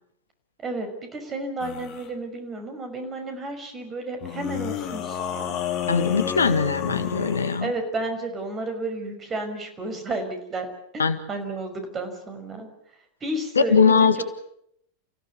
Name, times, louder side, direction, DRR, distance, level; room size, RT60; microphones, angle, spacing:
voice 1, 0.6-5.5 7.6-10.7 10.9-12.7 13.2-14.2, right 2 dB, 25° right, 6 dB, 5.7 m, -32 dB
sound 1, 1.6-2.1 4.2-7.7, left 9 dB, 40° left, 2.6 m, -31 dB
voice 2, 5.9-7.7 11.0-11.2 13.7-14.2, left 5 dB, 75° left, 11 dB, 1.6 m, -20 dB
29.5 x 16.5 x 8.4 m, 0.74 s
figure-of-eight pair, 90°, 0 cm